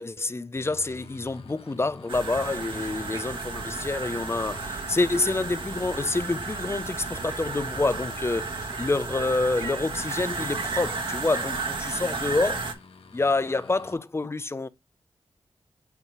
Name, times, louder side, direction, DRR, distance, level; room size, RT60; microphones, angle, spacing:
voice 1, 0.0-12.6 13.1-14.7, left 3 dB, 25° left, 0.6 m, -27 dB
sound 1, 0.5-13.9, left 4 dB, 75° left, 1.2 m, -50 dB
sound 2, 2.1-12.7, right 4 dB, 60° right, 1.5 m, -33 dB
8.2 x 2.9 x 4.6 m
cardioid pair, 75°, 10 cm